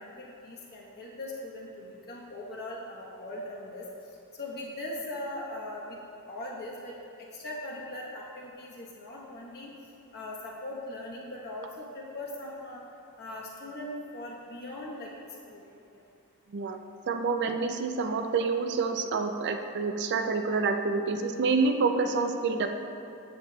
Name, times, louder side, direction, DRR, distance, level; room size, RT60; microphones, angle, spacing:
voice 1, 0.0-3.9 4.4-6.0 6.3-6.9 7.3-9.7 10.1-12.8 13.2-15.1 15.5-15.6, left 1 dB, 45° left, -4 dB, 1.1 m, -40 dB
voice 2, 17.1-22.7, right 4 dB, 50° right, 6 dB, 0.4 m, -27 dB
8.1 x 7.3 x 2.3 m, 2.6 s
head